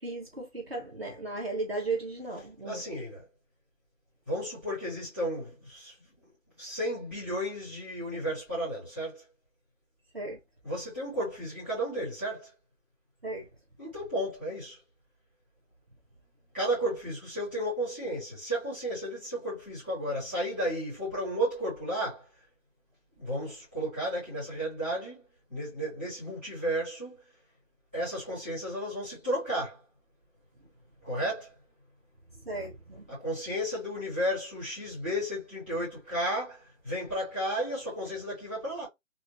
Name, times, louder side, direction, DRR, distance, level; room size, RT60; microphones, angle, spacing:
voice 1, 0.0-2.8 10.1-10.4 13.2-13.5 32.4-33.1, right 3 dB, 50° right, 1.1 m, -35 dB
voice 2, 2.6-3.3 4.2-6.3 6.6-9.2 10.6-12.5 13.8-14.8 16.5-22.3 23.2-27.2 27.9-29.8 31.0-31.6 33.1-38.9, equal, 10° right, 1.4 m, -33 dB
2.7 x 2.6 x 2.8 m
figure-of-eight pair, 175°, 39 cm